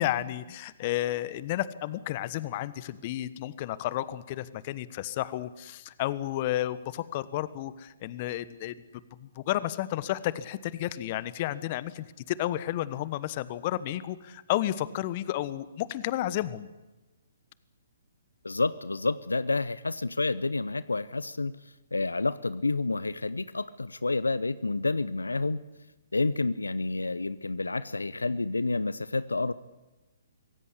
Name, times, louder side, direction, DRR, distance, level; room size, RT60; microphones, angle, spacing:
voice 1, 0.0-8.7 9.2-16.7, left 14 dB, 40° left, 16 dB, 1.2 m, -32 dB
voice 2, 18.4-21.5 21.9-25.6 26.1-29.5, left 3 dB, 85° left, 17 dB, 0.7 m, -29 dB
24.5 x 17.0 x 9.9 m, 1.1 s
figure-of-eight pair, 130°, 0 cm